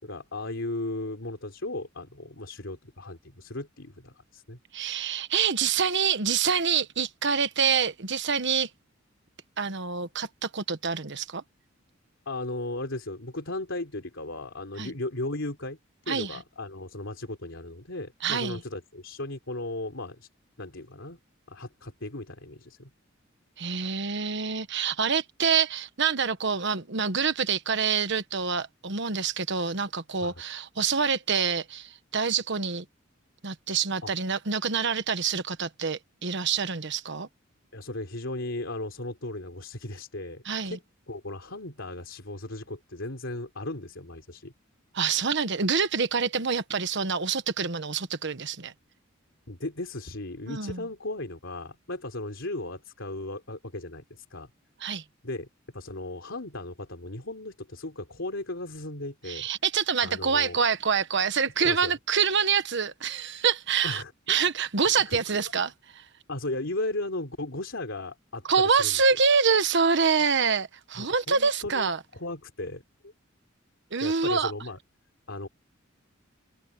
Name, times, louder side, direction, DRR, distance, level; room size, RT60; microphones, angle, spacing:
voice 1, 0.0-4.6 12.3-15.8 16.1-20.3 20.6-21.2 21.5-22.9 30.2-30.3 34.0-34.1 37.7-40.8 41.1-44.5 49.5-54.5 55.2-55.5 55.7-59.5 60.0-60.6 61.6-61.9 63.8-64.5 65.0-65.4 66.3-69.0 71.0-73.1 74.0-74.8 75.3-75.5, left 2 dB, 70° left, 3.7 m, -36 dB
voice 2, 4.7-8.7 9.6-11.4 14.8-14.9 16.1-16.4 18.2-18.6 23.6-32.9 33.4-37.3 40.4-40.8 44.9-48.7 50.5-50.8 54.8-55.0 59.3-65.7 68.5-72.0 73.9-74.5, right 6 dB, 65° right, 1.2 m, -26 dB
open air
head